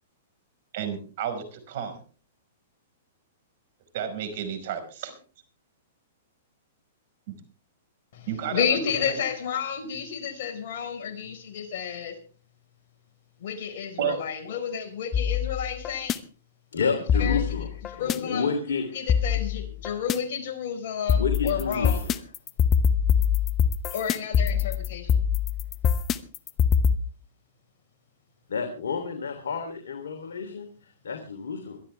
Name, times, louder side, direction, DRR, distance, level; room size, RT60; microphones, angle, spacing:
voice 1, 0.7-2.0 3.9-5.2 7.3-7.4 8.3-8.6 9.0-9.2 14.0-14.2, right 8 dB, 55° right, 9 dB, 5.0 m, -31 dB
voice 2, 8.1-12.2 13.4-16.2 17.2-17.4 17.9-18.5 18.9-22.0 23.9-25.2, left 7 dB, 60° left, 5 dB, 4.7 m, -31 dB
sound 1, 15.1-16.2 17.1-18.2 19.1-20.2 21.1-27.0, left 7 dB, 25° left, 1.0 m, -23 dB
voice 3, 16.7-17.7 18.0-18.9 21.1-22.2 28.5-30.7 31.0-31.8, left 5 dB, 80° left, 4 dB, 3.1 m, -29 dB
22.5 x 13.0 x 3.4 m, 0.37 s
hypercardioid pair, 125°, 0 cm